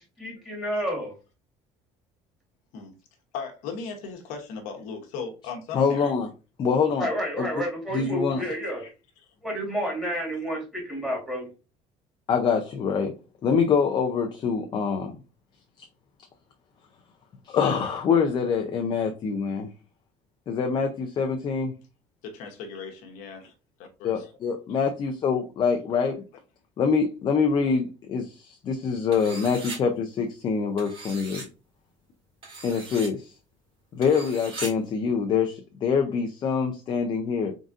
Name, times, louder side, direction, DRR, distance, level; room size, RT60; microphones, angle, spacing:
voice 1, 0.2-1.1 7.0-8.8 9.4-11.5, equal, 5° right, 2.1 m, -30 dB
voice 2, 3.3-6.1 22.2-23.5 23.8-24.3, left 5 dB, 80° left, 1.0 m, -37 dB
voice 3, 5.7-6.3 6.6-7.1 7.4-7.6 7.9-8.4 12.3-13.1 13.4-15.2 17.5-19.7 20.5-21.7 24.0-26.2 26.8-31.5 32.6-33.3 33.9-37.5, left 6 dB, 35° left, 0.5 m, -25 dB
sound 1, 29.1-29.8 30.8-31.5 32.4-33.1 34.0-34.7, right 3 dB, 45° right, 2.1 m, -38 dB
3.8 x 3.6 x 2.5 m
cardioid pair, 145°, 13 cm